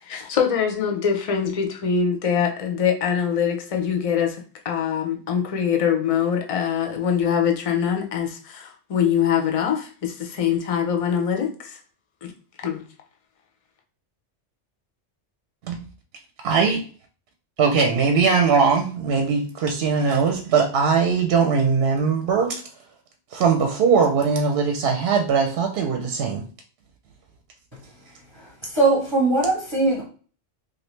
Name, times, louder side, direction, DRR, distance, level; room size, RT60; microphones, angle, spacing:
voice 1, 0.0-11.8 12.2-12.3 12.6-12.8, left 7 dB, 45° left, 0.4 m, -23 dB
voice 2, 16.4-16.8 17.6-22.6 23.3-26.4, right 5 dB, 65° right, 0.7 m, -20 dB
voice 3, 28.4-30.0, right 2 dB, 30° right, 0.7 m, -21 dB
3.1 x 2.6 x 3.1 m
omnidirectional pair, 1.2 m